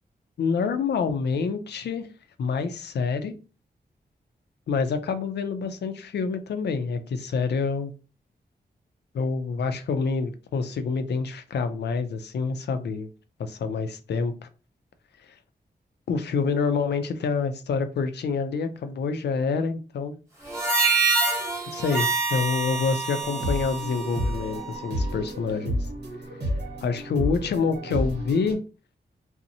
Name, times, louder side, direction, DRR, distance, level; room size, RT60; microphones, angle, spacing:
voice 1, 0.4-2.1 2.4-3.3 4.7-7.9 9.1-13.1 13.4-14.5 15.2-15.3 16.1-20.1 21.7-25.8 26.8-28.6, left 5 dB, 80° left, 9 dB, 0.4 m, -27 dB
Harmonica, 20.5-25.1, right 4 dB, 15° right, 0.8 m, -26 dB
sound 1, 23.2-28.5, equal, 80° right, 1.0 m, -31 dB
2.6 x 2.0 x 2.6 m, 0.33 s
wide cardioid pair, 160°, 17 cm